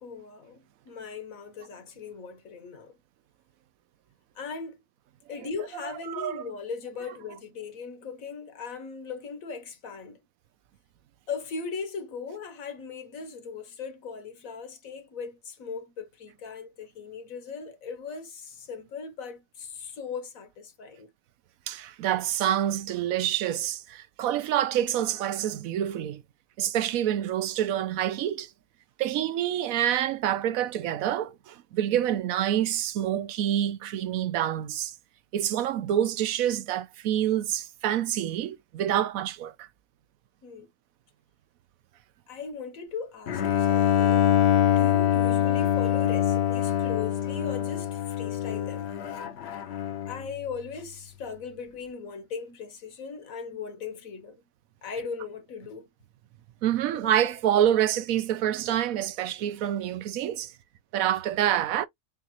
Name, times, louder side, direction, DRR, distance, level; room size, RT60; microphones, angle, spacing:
voice 1, 0.0-3.0 4.3-4.8 5.3-10.2 11.3-21.1 40.4-40.7 42.3-48.9 50.1-54.4 54.8-55.9 57.0-57.1, left 5 dB, 75° left, 1.6 m, -38 dB
voice 2, 5.8-6.4 21.7-26.2 26.6-28.5 29.0-34.9 35.3-39.7 56.6-60.5 60.9-61.9, right 11 dB, 80° right, 1.1 m, -27 dB
Bowed string instrument, 43.3-50.3, left 10 dB, 60° left, 0.8 m, -24 dB
7.3 x 2.4 x 2.9 m
omnidirectional pair, 1.4 m